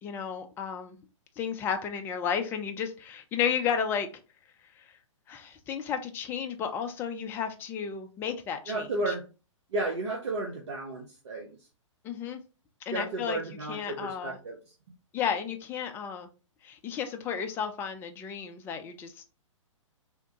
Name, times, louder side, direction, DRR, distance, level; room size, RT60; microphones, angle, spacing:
voice 1, 0.0-1.0 1.4-4.1 4.8-4.9 5.3-9.1 12.0-12.4 12.9-13.4 13.7-14.4 15.1-16.3 16.6-19.3, left 7 dB, 15° left, 0.3 m, -33 dB
voice 2, 8.7-9.2 9.7-11.6 12.9-14.6, right 2 dB, 60° right, 0.7 m, -33 dB
3.4 x 2.1 x 2.8 m
figure-of-eight pair, 115°, 17 cm